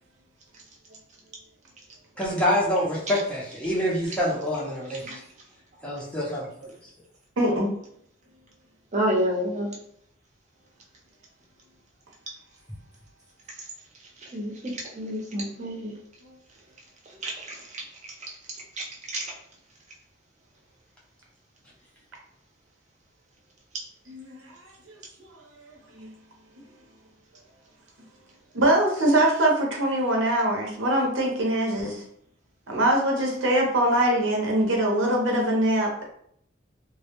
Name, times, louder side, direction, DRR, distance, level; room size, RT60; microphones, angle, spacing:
voice 1, 2.2-5.1 5.8-6.7, equal, 5° left, -6 dB, 0.6 m, -26 dB
voice 2, 7.4-7.7 16.2-16.3 24.1-24.4 24.9-25.0 26.0-26.1 28.5-32.0 32.7-36.0, right 1 dB, 75° right, -1 dB, 0.7 m, -23 dB
voice 3, 8.9-9.7 14.3-14.5 14.9-15.9 17.2-17.6 18.8-18.9 19.1-19.2, equal, 40° right, -2 dB, 0.6 m, -28 dB
2.1 x 2.1 x 2.9 m, 0.66 s
head